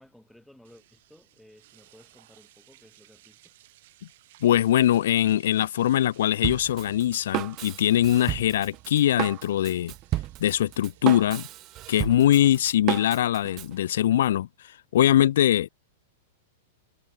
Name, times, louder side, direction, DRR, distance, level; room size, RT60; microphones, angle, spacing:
voice 1, 0.0-3.5, left 1 dB, ahead, 2.2 m, -56 dB
sound 1, 0.6-14.2, right 17 dB, 50° right, 5.0 m, -59 dB
voice 2, 4.4-9.9 10.4-11.4 11.9-15.7, left 12 dB, 70° left, 0.4 m, -22 dB
Drum kit, 6.4-13.7, right 16 dB, 25° right, 0.4 m, -33 dB
supercardioid pair, 165°, 0 cm